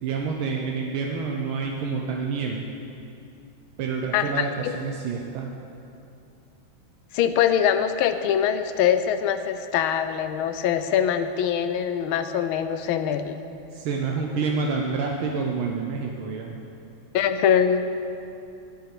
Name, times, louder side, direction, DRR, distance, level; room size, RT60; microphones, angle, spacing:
voice 1, 0.0-2.7 3.8-5.5 13.7-16.6, right 5 dB, 80° right, 1 dB, 1.6 m, -28 dB
voice 2, 4.1-4.7 7.1-13.4 17.1-17.9, left 9 dB, 85° left, 10 dB, 1.4 m, -23 dB
11.0 x 8.3 x 6.0 m, 2.6 s
omnidirectional pair, 2.2 m